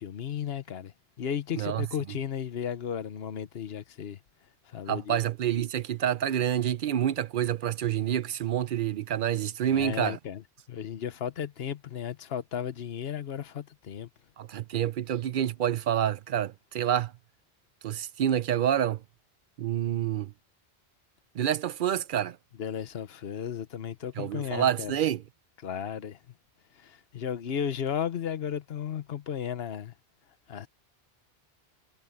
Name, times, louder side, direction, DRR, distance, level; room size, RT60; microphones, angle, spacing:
voice 1, 0.0-4.2 4.7-5.2 9.7-10.4 10.7-14.1 22.6-24.9 25.6-26.2 26.8-29.9 30.5-30.7, left 8 dB, 75° left, 1.2 m, -34 dB
voice 2, 1.5-1.9 4.9-10.2 14.4-17.1 17.8-19.0 19.6-20.3 21.3-22.4 24.2-25.2, right 10 dB, 60° right, 0.7 m, -28 dB
omnidirectional pair, 1.1 m